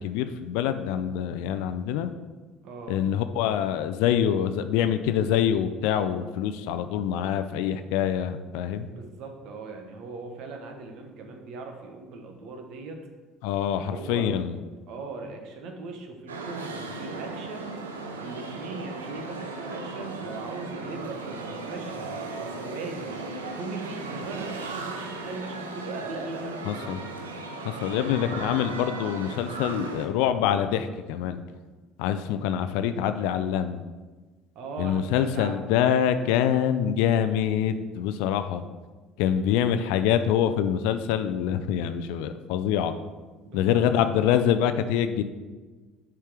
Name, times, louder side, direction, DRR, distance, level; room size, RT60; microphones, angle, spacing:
voice 1, 0.0-2.1 2.9-8.9 13.4-14.6 26.7-27.0 27.6-31.4 32.0-33.8 34.8-38.6 39.2-42.9 43.5-45.2, left 9 dB, 70° left, 10 dB, 0.4 m, -25 dB
voice 2, 2.6-3.0 8.8-13.0 13.8-14.3 14.9-17.8 18.2-23.2 23.5-27.0 27.9-28.4 34.5-35.8 43.4-43.8, right 3 dB, 60° right, 4 dB, 1.2 m, -39 dB
sound 1, 16.3-30.1, right 3 dB, 85° right, 0.7 m, -36 dB
7.5 x 4.4 x 4.9 m, 1.3 s
hypercardioid pair, 60°, 0 cm